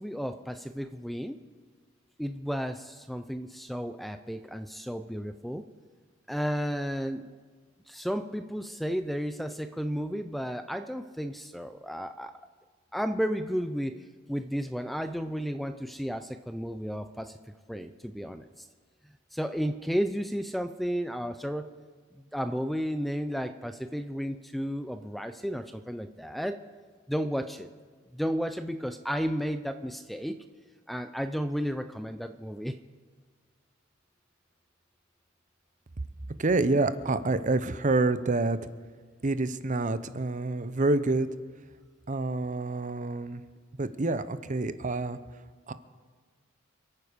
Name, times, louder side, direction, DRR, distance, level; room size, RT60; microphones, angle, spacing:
voice 1, 0.0-1.4 2.2-5.6 6.3-7.3 7.9-12.3 12.9-17.4 17.7-18.7 19.3-21.7 22.1-26.6 27.1-27.7 28.1-30.4 30.9-32.8, equal, ahead, 9 dB, 0.4 m, -33 dB
voice 2, 36.4-38.6 39.2-41.3 42.1-43.4 43.8-45.2 45.7-45.8, right 2 dB, 40° right, 13 dB, 0.7 m, -27 dB
27.5 x 9.4 x 5.1 m, 1.5 s
head